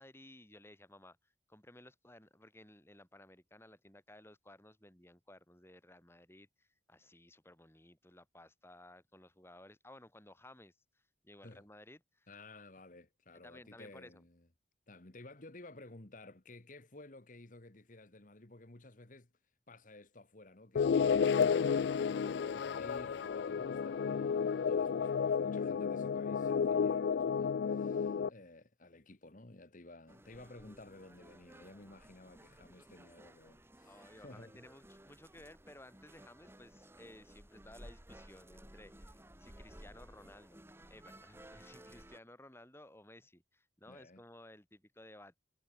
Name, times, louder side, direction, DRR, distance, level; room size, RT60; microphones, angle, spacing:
voice 1, 0.0-10.7 11.2-12.3 13.3-14.2 33.9-40.6 40.9-45.4, left 1 dB, 15° left, 4.9 m, -57 dB
voice 2, 12.3-14.5 14.9-19.3 19.7-34.6 43.9-44.2, left 2 dB, 45° left, 1.6 m, -55 dB
sound 1, 20.8-28.3, left 6 dB, 65° left, 0.3 m, -32 dB
sound 2, 30.1-42.2, right 1 dB, 15° right, 2.5 m, -57 dB
head